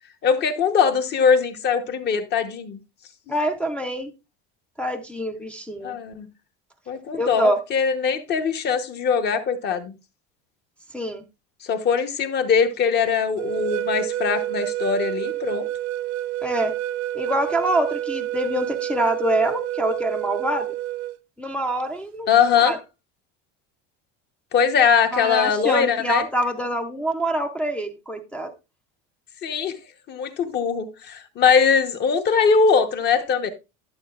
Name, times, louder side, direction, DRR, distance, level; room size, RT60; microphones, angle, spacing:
voice 1, 0.2-2.8 5.8-6.3 6.9-9.9 11.6-15.7 22.3-22.8 24.5-26.2 29.4-29.8 30.1-33.5, left 6 dB, 30° left, 0.9 m, -21 dB
voice 2, 3.3-4.1 4.8-6.0 7.1-7.6 10.9-11.2 16.4-16.7 17.1-20.7 21.4-22.3 22.5-22.8 25.1-28.5, right 1 dB, 5° left, 0.5 m, -25 dB
sound 1, 13.4-21.2, right 13 dB, 85° right, 0.7 m, -28 dB
11.5 x 7.6 x 2.4 m
cardioid pair, 170°, 31 cm